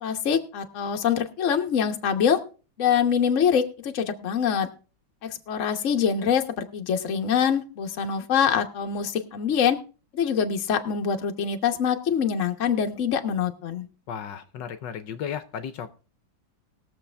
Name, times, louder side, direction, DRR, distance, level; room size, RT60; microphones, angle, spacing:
voice 1, 0.0-2.4 2.8-4.7 5.2-9.8 10.1-13.9, left 7 dB, 45° left, 5 dB, 1.2 m, -24 dB
voice 2, 14.1-15.9, left 8 dB, 75° left, 10 dB, 1.4 m, -34 dB
20.5 x 7.0 x 3.4 m, 0.36 s
omnidirectional pair, 2.1 m